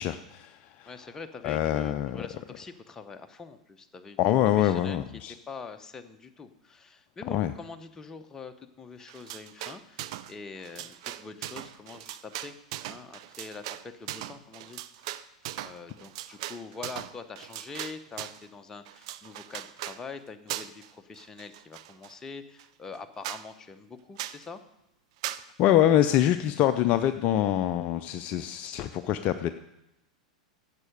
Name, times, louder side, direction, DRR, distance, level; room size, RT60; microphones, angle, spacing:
voice 1, 0.0-0.9 1.4-2.2 4.2-5.3 7.3-7.5 25.6-29.5, left 11 dB, 40° left, 10 dB, 0.5 m, -25 dB
voice 2, 0.9-12.6 12.9-24.6, left 4 dB, 15° left, 7 dB, 0.9 m, -44 dB
sound 1, 9.1-10.3 10.6-18.4 18.9-20.0 20.5-20.9 21.2-22.1 22.6-22.7 22.9-23.0 23.2-23.4 24.2-24.4 25.2-25.4, right 14 dB, 55° right, 0.5 m, -39 dB
11.0 x 7.5 x 6.7 m, 0.90 s
figure-of-eight pair, 95°, 4 cm